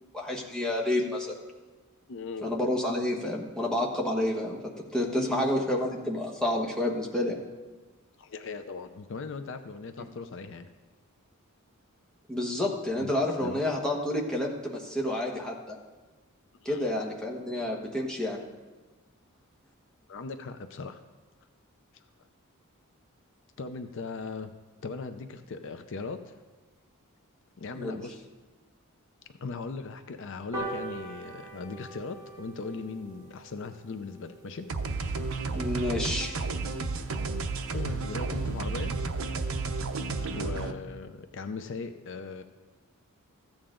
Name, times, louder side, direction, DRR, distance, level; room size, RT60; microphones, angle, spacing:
voice 1, 0.1-1.3 2.4-7.4 10.0-10.1 12.3-15.7 16.6-18.4 27.7-28.0 35.5-36.3, left 1 dB, 5° left, -2 dB, 1.2 m, -29 dB
voice 2, 2.1-2.5 5.1-5.6 8.2-10.7 13.0-13.6 16.6-16.9 20.1-21.0 23.6-24.5 24.8-26.4 27.6-28.3 29.3-34.7 36.0-36.2 37.7-38.9 40.3-42.4, left 4 dB, 60° left, 8 dB, 0.5 m, -39 dB
sound 1, 30.5-37.3 37.7-37.8 38.1-38.2 38.5-38.6 38.9-39.0 39.3-39.5 40.0-40.1, right 2 dB, 20° right, 2.6 m, -43 dB
sound 2, 34.7-40.7, right 3 dB, 70° right, 0.7 m, -32 dB
14.5 x 8.7 x 3.8 m, 1.3 s
head